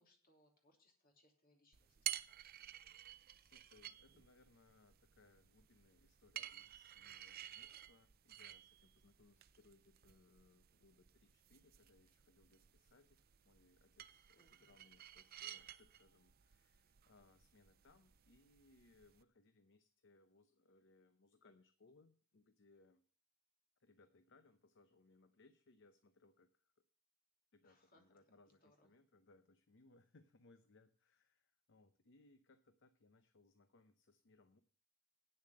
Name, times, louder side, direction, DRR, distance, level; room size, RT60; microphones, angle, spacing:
voice 1, 0.0-2.0 14.4-14.9 27.6-28.1 28.4-28.9, left 1 dB, 45° left, 2 dB, 2.9 m, -73 dB
sound 1, 1.7-19.2, right 12 dB, 45° right, 0.5 m, -53 dB
voice 2, 3.4-23.0 23.8-26.7 27.5-34.6, left 3 dB, 60° left, 10 dB, 0.7 m, -69 dB
9.6 x 7.1 x 7.5 m, 0.43 s
head